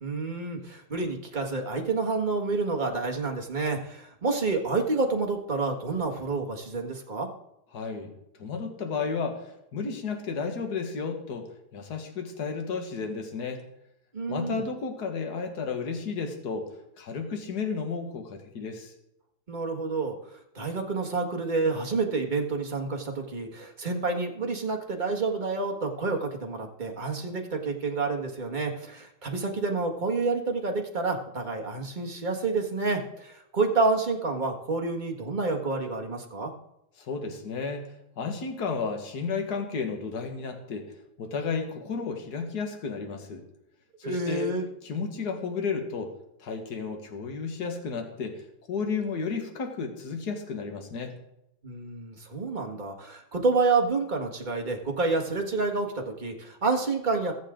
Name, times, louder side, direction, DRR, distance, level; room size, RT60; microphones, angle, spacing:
voice 1, 0.0-7.3 14.1-14.6 19.5-36.5 44.0-44.6 51.6-57.3, right 3 dB, 25° right, 2 dB, 1.6 m, -29 dB
voice 2, 7.7-8.1 8.4-13.6 14.3-16.7 17.0-18.9 37.0-40.9 41.2-43.4 44.0-44.5 44.8-46.1 46.4-51.2, left 5 dB, 60° left, 4 dB, 2.1 m, -33 dB
22.0 x 7.5 x 3.8 m, 0.82 s
omnidirectional pair, 2.0 m